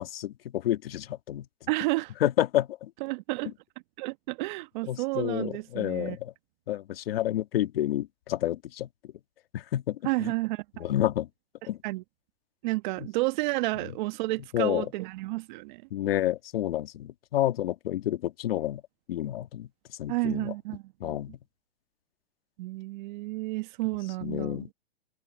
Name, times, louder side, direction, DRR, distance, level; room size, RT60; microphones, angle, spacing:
voice 1, 0.0-1.5 2.2-2.9 4.9-6.3 6.7-8.9 9.5-10.3 10.8-11.3 11.7-11.8 14.5-14.9 15.9-18.8 19.1-19.7 20.0-20.5 21.0-21.4 24.2-24.7, left 13 dB, 70° left, 2.0 m, -29 dB
voice 2, 1.7-2.1 3.0-3.5 4.0-6.2 10.0-10.9 11.8-12.0 12.6-15.8 20.1-21.2 22.6-24.7, right 22 dB, 50° right, 1.2 m, -31 dB
hypercardioid pair, 135°, 30 cm